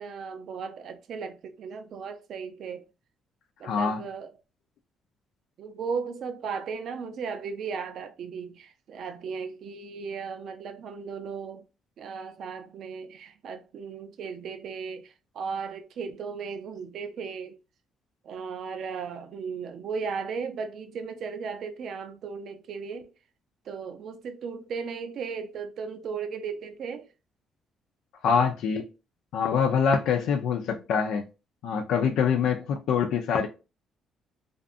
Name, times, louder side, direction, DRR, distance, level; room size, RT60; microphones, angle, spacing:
voice 1, 0.0-2.8 3.6-4.3 5.6-11.6 12.0-17.6 18.2-23.0 23.7-27.1, right 5 dB, 65° right, 0.4 m, -36 dB
voice 2, 3.6-4.0 28.2-28.9 29.3-31.2 31.6-33.5, left 6 dB, 80° left, 0.3 m, -25 dB
2.5 x 2.5 x 2.3 m
cardioid pair, 110°, 0 cm